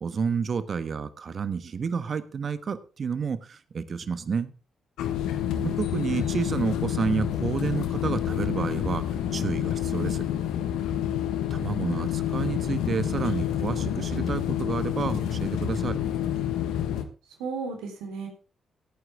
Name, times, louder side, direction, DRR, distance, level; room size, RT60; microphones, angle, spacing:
voice 1, 0.0-4.5 5.6-9.0 9.3-10.2 11.5-16.0, right 6 dB, 55° right, 13 dB, 1.3 m, -30 dB
sound 1, 5.0-17.0, left 10 dB, 75° left, 1.3 m, -28 dB
voice 2, 5.5-5.9 11.6-11.7 12.0-12.1 17.4-18.3, right 4 dB, 80° right, 3 dB, 3.7 m, -35 dB
17.0 x 9.3 x 3.6 m, 0.35 s
hypercardioid pair, 40°, 0 cm